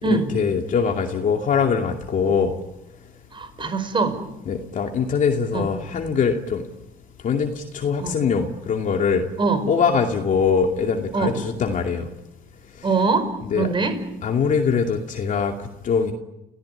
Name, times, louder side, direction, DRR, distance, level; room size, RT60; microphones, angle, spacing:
voice 1, 0.0-2.5 4.5-6.6 7.2-9.3 9.7-12.1 13.5-13.7 14.2-16.1, left 6 dB, 50° left, 3 dB, 2.5 m, -22 dB
voice 2, 3.3-4.2 5.5-5.7 8.0-8.2 9.4-9.7 11.1-11.4 12.8-14.0, right 4 dB, 30° right, 9 dB, 5.4 m, -23 dB
30.0 x 17.0 x 9.8 m, 0.95 s
cardioid pair, 110°, 17 cm